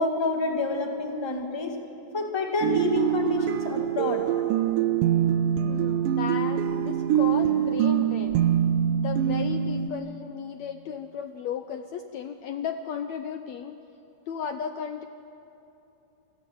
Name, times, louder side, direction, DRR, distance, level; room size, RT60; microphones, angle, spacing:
voice 1, 0.0-1.7 2.1-4.3, left 3 dB, 10° left, 3 dB, 1.5 m, -28 dB
sound 1, 2.6-9.9, right 10 dB, 80° right, 2.4 m, -24 dB
voice 2, 2.9-3.6 5.7-8.5 9.0-13.8 14.3-15.1, left 7 dB, 70° left, 8 dB, 1.8 m, -35 dB
28.0 x 20.5 x 8.9 m, 2.9 s
omnidirectional pair, 3.8 m